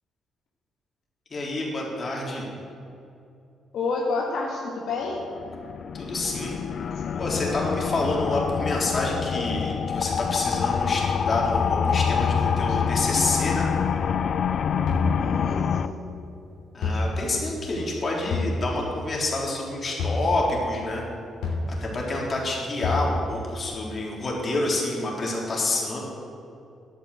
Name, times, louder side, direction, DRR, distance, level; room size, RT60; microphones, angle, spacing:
voice 1, 1.3-2.5 5.9-6.6 7.2-13.7 16.7-21.0 21.8-26.0, left 2 dB, 40° left, -2 dB, 3.7 m, -28 dB
voice 2, 3.7-5.2 15.2-15.9, left 3 dB, 75° left, -2 dB, 1.9 m, -29 dB
sound 1, 5.2-15.9, left 7 dB, 55° left, 0.6 m, -26 dB
sound 2, 14.9-15.1 16.8-17.1 18.3-18.5 20.0-20.2 21.4-21.7 22.8-23.1, left 3 dB, 90° left, 3.2 m, -26 dB
11.5 x 9.1 x 8.1 m, 2.5 s
cardioid pair, 90°, 0 cm